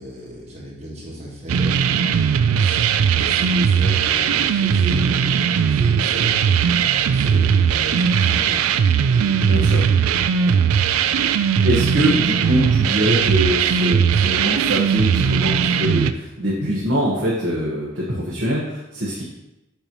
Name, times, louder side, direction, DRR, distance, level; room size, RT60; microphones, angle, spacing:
voice 1, 0.0-9.7 10.3-10.7, equal, 30° right, -5 dB, 1.7 m, -35 dB
sound 1, 1.5-16.1, right 7 dB, 85° right, 0.3 m, -18 dB
voice 2, 9.5-9.8 11.6-19.2, equal, 55° right, -6 dB, 1.2 m, -23 dB
6.9 x 3.0 x 5.3 m, 0.96 s
head